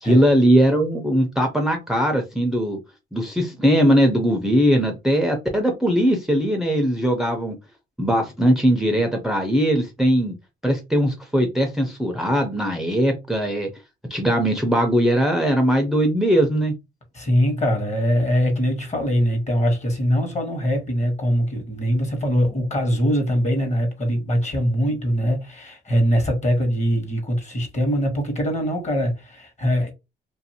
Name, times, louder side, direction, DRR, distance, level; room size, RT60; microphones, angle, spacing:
voice 1, 0.0-2.8 3.1-7.6 8.0-10.3 10.6-13.7 14.1-16.7, equal, ahead, 0.6 m, -20 dB
voice 2, 17.1-29.9, equal, 35° left, 1.2 m, -22 dB
2.6 x 2.5 x 2.8 m
cardioid pair, 90°, 20 cm